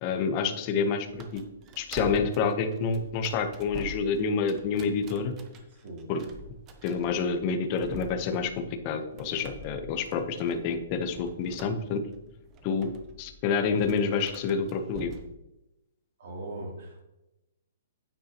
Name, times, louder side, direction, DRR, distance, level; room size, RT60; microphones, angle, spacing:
voice 1, 0.0-1.4 1.8-5.3 6.1-6.2 6.8-12.0 12.6-12.9 13.2-15.1, left 5 dB, 25° left, 6 dB, 0.9 m, -28 dB
sound 1, 1.1-15.4, right 3 dB, 20° right, 0.7 m, -45 dB
voice 2, 16.2-17.0, right 1 dB, 50° right, 0 dB, 3.0 m, -39 dB
9.2 x 9.2 x 3.0 m, 0.94 s
hypercardioid pair, 170°, 0 cm